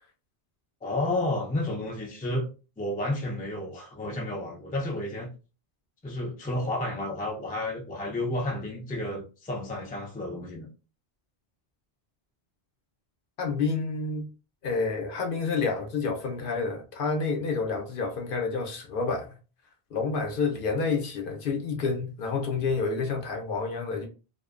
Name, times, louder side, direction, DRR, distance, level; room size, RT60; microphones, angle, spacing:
voice 1, 0.8-2.5 2.8-5.3 6.0-10.7, left 1 dB, 15° left, 0.4 m, -31 dB
voice 2, 13.4-14.3 14.6-19.4 19.9-24.1, left 4 dB, 60° left, 0.7 m, -29 dB
2.5 x 2.1 x 2.4 m
omnidirectional pair, 1.0 m